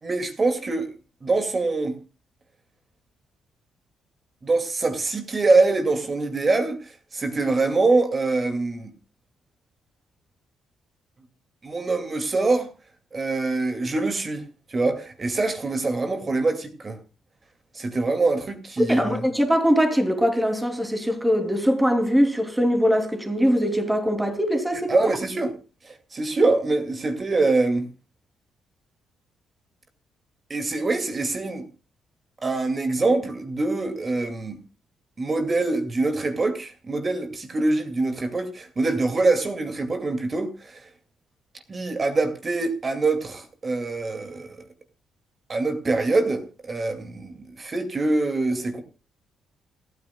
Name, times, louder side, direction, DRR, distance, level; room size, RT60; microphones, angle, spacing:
voice 1, 0.0-0.9 1.2-2.0 4.4-8.9 11.6-12.7 13.1-17.0 17.7-19.2 24.9-25.5 25.8-27.9 30.5-31.7 32.4-34.6 35.2-40.9 41.7-44.6 45.5-48.8, right 3 dB, 35° right, 2.3 m, -24 dB
voice 2, 18.9-25.1, equal, 10° right, 2.9 m, -22 dB
28.0 x 9.5 x 2.3 m
cardioid pair, 90°, 0 cm